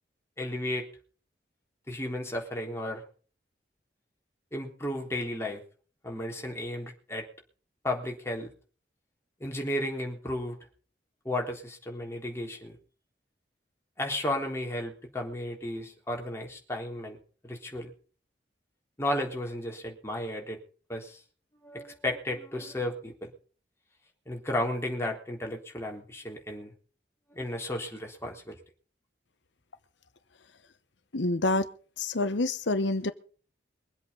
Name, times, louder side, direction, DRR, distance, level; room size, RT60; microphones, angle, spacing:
voice 1, 0.4-0.9 1.9-3.0 4.5-5.6 6.0-7.3 7.8-8.5 9.4-10.6 11.2-12.8 14.0-17.9 19.0-20.6 20.9-21.2 21.6-23.3 24.3-26.7 27.3-28.6, left 1 dB, 15° left, 3.6 m, -34 dB
voice 2, 31.1-31.7 32.0-33.1, left 2 dB, 80° left, 1.1 m, -27 dB
23.5 x 8.2 x 5.5 m
head